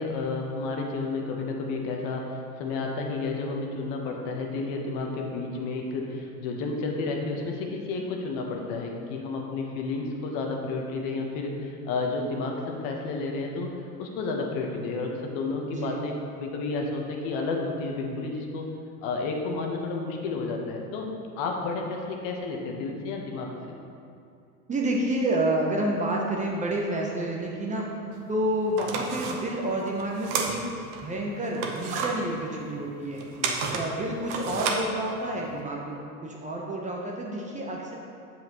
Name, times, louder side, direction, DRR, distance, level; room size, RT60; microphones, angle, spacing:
voice 1, 0.0-13.7 14.0-18.7 19.0-21.1 21.4-23.8 33.4-33.7, left 3 dB, 45° left, 1 dB, 1.2 m, -31 dB
voice 2, 15.7-16.0 24.7-27.9 28.3-33.2 33.7-37.9, right 1 dB, 15° right, -1 dB, 0.8 m, -29 dB
sound 1, 28.1-28.2 28.7-31.0 31.4-35.6, right 5 dB, 40° right, 0.9 m, -32 dB
7.7 x 7.0 x 3.0 m, 2.4 s
hypercardioid pair, 95°, 45 cm